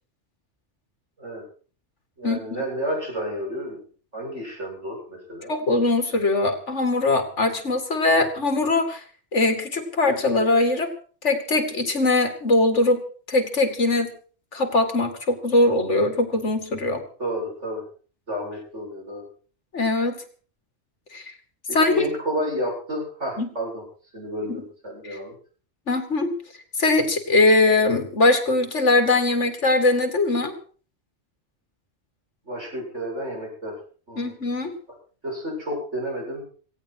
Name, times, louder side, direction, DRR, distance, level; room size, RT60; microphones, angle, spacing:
voice 1, 2.2-3.8 4.1-5.5 17.2-17.8 18.3-19.3 21.7-23.8 24.1-25.4 32.4-33.8 34.1-34.3 35.2-36.4, equal, 85° right, -1 dB, 8.3 m, -31 dB
voice 2, 5.5-9.0 9.3-10.9 11.2-13.0 13.3-14.1 14.5-17.0 19.7-20.2 21.1-21.3 21.7-22.0 23.4-23.5 25.0-25.2 25.9-26.3 26.8-30.5 34.2-34.7, left 2 dB, 80° left, 7 dB, 2.7 m, -21 dB
17.5 x 16.0 x 4.7 m, 0.42 s
omnidirectional pair, 1.2 m